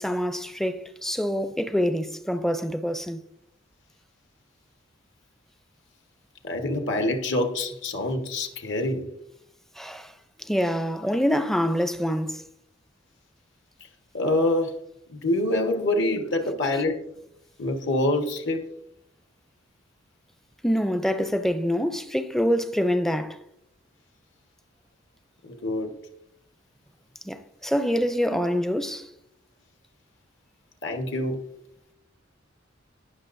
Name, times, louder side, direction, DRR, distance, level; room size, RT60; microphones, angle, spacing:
voice 1, 0.0-3.2 9.8-10.1 10.4-12.4 20.6-23.4 27.2-29.1, equal, ahead, 0.5 m, -26 dB
voice 2, 6.4-9.1 14.1-14.8 15.1-17.0 17.6-18.7 25.4-25.9 28.3-28.4 30.8-31.4, left 1 dB, 65° left, 1.4 m, -26 dB
18.5 x 6.3 x 2.6 m
head